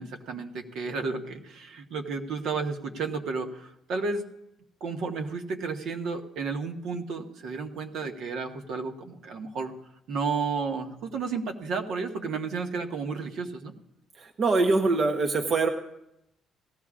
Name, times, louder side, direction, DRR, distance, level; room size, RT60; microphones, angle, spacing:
voice 1, 0.0-4.3 4.8-9.7 10.1-13.7, right 4 dB, 60° right, 3 dB, 1.2 m, -32 dB
voice 2, 14.2-15.7, right 3 dB, 35° right, 3 dB, 0.8 m, -23 dB
18.0 x 15.0 x 2.4 m, 0.82 s
cardioid pair, 175°, 0 cm